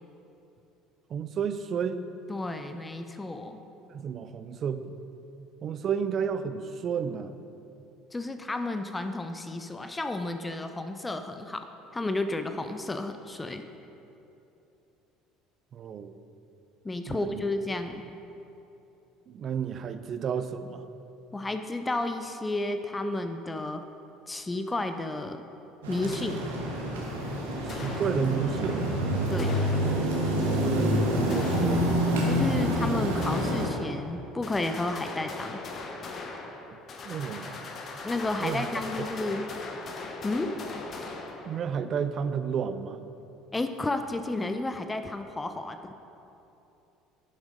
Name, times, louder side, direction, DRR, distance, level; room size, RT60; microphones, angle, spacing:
voice 1, 1.1-2.1 3.9-4.8 5.6-7.3 15.7-16.2 17.1-17.4 19.3-20.8 27.6-28.9 30.3-31.9 37.0-37.6 38.4-38.6 41.5-43.0, right 7 dB, 45° right, 11 dB, 0.5 m, -31 dB
voice 2, 2.3-3.6 8.1-13.7 16.8-18.0 21.3-23.8 24.3-25.4 25.9-26.5 29.3-29.5 32.2-35.6 38.0-39.5 40.2-40.6 43.5-45.9, left 2 dB, 15° left, 8 dB, 0.6 m, -32 dB
sound 1, 25.8-33.7, equal, 75° right, 1.5 m, -27 dB
sound 2, 27.7-28.7 29.4-30.4 31.3-32.3 33.2-34.1 34.4-41.9, left 3 dB, 40° left, 1.0 m, -40 dB
10.5 x 6.3 x 5.1 m, 2.9 s
figure-of-eight pair, 60°, 0 cm